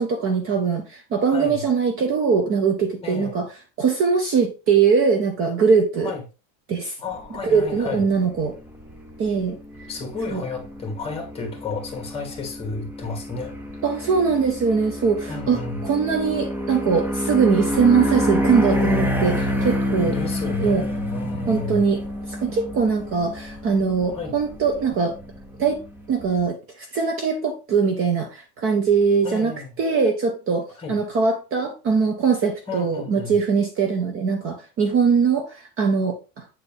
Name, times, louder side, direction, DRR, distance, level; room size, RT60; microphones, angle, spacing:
voice 1, 0.0-3.5 3.8-6.1 6.7-7.0 7.4-8.5 9.2-9.6 10.3-10.4 13.8-20.2 20.6-20.8 21.5-22.0 22.3-25.2 25.6-25.8 26.1-36.5, right 5 dB, 30° right, 1.0 m, -21 dB
voice 2, 1.3-1.6 3.0-3.3 6.0-6.2 7.0-8.0 9.9-13.6 15.3-15.8 20.0-21.8 24.1-24.4 29.2-29.7 30.8-31.0 32.7-33.3, left 4 dB, 15° left, 2.1 m, -32 dB
sound 1, 7.1-26.4, equal, 5° right, 0.4 m, -28 dB
8.5 x 4.3 x 3.4 m
cardioid pair, 165°, 41 cm